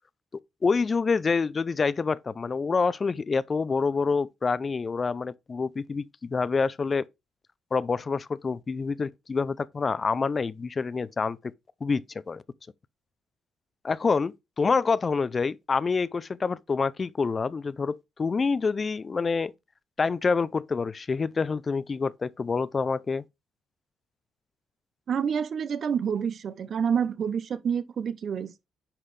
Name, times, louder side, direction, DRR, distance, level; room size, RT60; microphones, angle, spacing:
voice 1, 0.6-7.0 7.7-11.4 11.8-12.4 13.8-19.5 20.0-23.2, left 4 dB, 35° left, 0.4 m, -27 dB
voice 2, 25.1-28.7, right 7 dB, 55° right, 0.7 m, -28 dB
10.0 x 4.0 x 3.2 m
cardioid pair, 90°, 0 cm